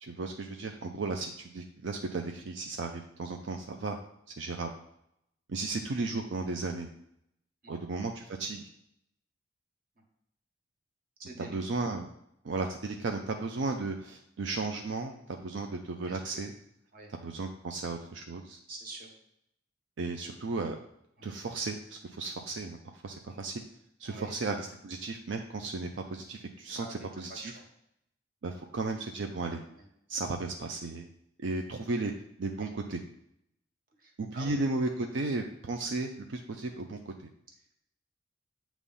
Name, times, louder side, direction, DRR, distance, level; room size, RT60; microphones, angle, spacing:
voice 1, 0.0-4.0 4.4-4.7 5.5-6.9 7.7-8.7 11.4-12.1 12.4-16.5 17.1-18.6 20.0-20.8 21.2-23.6 24.0-27.5 28.4-29.6 30.1-31.1 31.4-32.1 32.4-33.0 34.2-37.1, right 3 dB, 80° right, 3 dB, 0.5 m, -35 dB
voice 2, 11.2-11.6 16.1-16.5 16.9-17.1 18.7-19.1 21.2-21.3 23.3-23.4 24.1-24.3 26.8-27.6 29.7-29.9 34.0-34.6, right 2 dB, 50° right, 1 dB, 1.4 m, -46 dB
8.3 x 3.1 x 5.4 m, 0.77 s
head